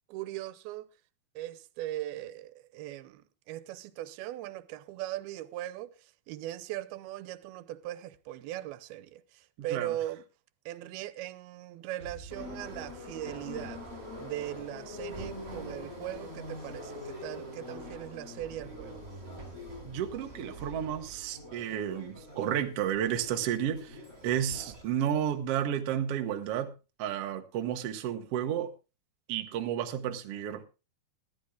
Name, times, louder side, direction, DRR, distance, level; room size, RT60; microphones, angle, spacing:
voice 1, 0.1-0.9 1.4-10.2 10.7-13.9 14.2-19.0, right 14 dB, 90° right, 2.7 m, -39 dB
Explosion, 12.0-15.8, right 3 dB, 15° left, 6.3 m, -53 dB
Subway metro underground, 12.3-24.8, left 1 dB, 20° right, 5.9 m, -44 dB
voice 2, 19.8-24.0 24.2-26.7 27.0-28.7 29.3-30.6, right 10 dB, 70° right, 1.5 m, -32 dB
20.5 x 13.0 x 2.3 m
omnidirectional pair, 4.3 m